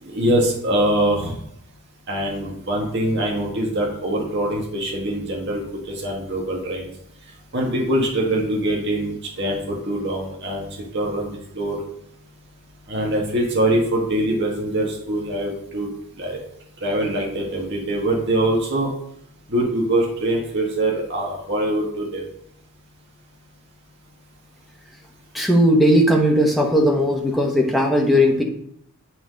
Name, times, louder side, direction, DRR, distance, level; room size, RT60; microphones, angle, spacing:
voice 1, 0.0-1.3 2.1-6.9 7.5-10.6 10.9-11.8 12.9-15.9 16.2-16.4 16.8-18.9 19.5-22.2, right 1 dB, 50° right, -1 dB, 1.6 m, -23 dB
voice 2, 25.3-28.4, equal, ahead, 0 dB, 1.1 m, -17 dB
9.1 x 4.0 x 5.2 m, 0.71 s
head